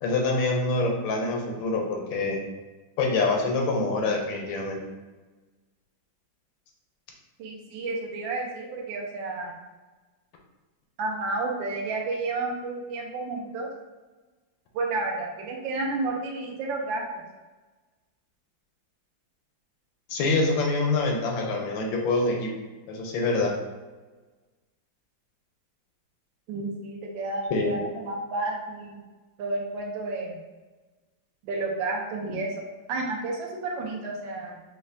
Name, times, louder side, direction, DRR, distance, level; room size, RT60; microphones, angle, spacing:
voice 1, 0.0-2.4 3.0-4.8 20.1-22.5 22.9-23.5 27.5-27.8, left 3 dB, 85° left, 1 dB, 1.4 m, -25 dB
voice 2, 7.4-9.5 11.0-13.7 14.7-17.0 26.5-29.0 29.4-30.4 31.4-32.6 32.9-34.6, right 3 dB, 80° right, 0 dB, 1.4 m, -31 dB
5.4 x 2.1 x 2.5 m, 1.2 s
omnidirectional pair, 2.1 m